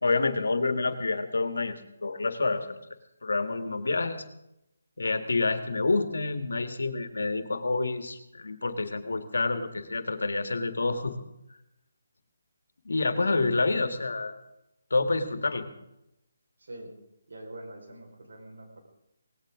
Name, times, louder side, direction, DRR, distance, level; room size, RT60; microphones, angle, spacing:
voice 1, 0.0-2.8 3.2-4.3 5.0-11.1 12.9-14.3 14.9-15.7, left 3 dB, 80° left, 9 dB, 1.7 m, -28 dB
voice 2, 16.6-17.0 17.3-18.8, right 1 dB, 70° right, 1 dB, 4.7 m, -45 dB
18.5 x 16.5 x 3.7 m, 0.85 s
figure-of-eight pair, 155°, 0 cm